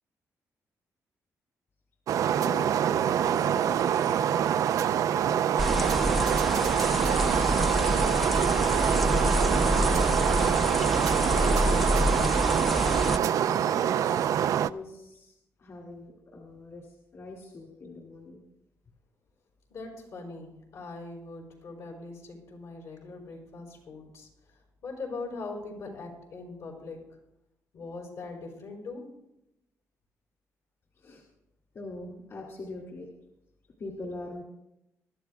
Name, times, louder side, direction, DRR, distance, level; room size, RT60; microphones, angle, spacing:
sound 1, 2.1-14.7, right 9 dB, 65° right, 0.3 m, -25 dB
voice 1, 2.3-4.6 5.2-8.4 9.0-11.9 13.0-14.0 14.6-18.4 31.0-31.2 31.7-33.1 33.8-34.4, left 2 dB, 50° left, 0 dB, 2.4 m, -43 dB
sound 2, 5.6-13.2, left 1 dB, ahead, 0.5 m, -27 dB
voice 2, 19.7-24.3 24.8-27.0 27.7-29.0, left 3 dB, 75° left, 0 dB, 4.7 m, -41 dB
23.0 x 13.0 x 2.3 m, 0.87 s
cardioid pair, 115°, 6 cm